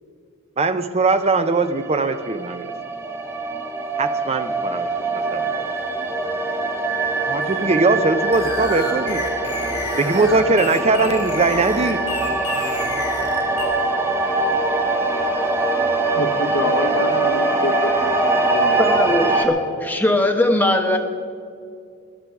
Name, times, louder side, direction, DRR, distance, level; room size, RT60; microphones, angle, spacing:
voice 1, 0.6-2.7 4.0-5.7 7.2-9.2 10.0-12.0, right 3 dB, 30° right, 11 dB, 0.6 m, -20 dB
sound 1, 1.4-19.4, right 2 dB, 10° right, 1.2 m, -23 dB
sound 2, 8.3-13.7, left 5 dB, 90° left, 2.8 m, -31 dB
voice 2, 14.6-15.2 16.1-17.9 18.2-18.9, left 2 dB, 65° left, 2 dB, 1.2 m, -27 dB
voice 3, 18.8-21.0, left 1 dB, 10° left, 3 dB, 1.1 m, -19 dB
18.5 x 10.5 x 4.7 m, 2.2 s
head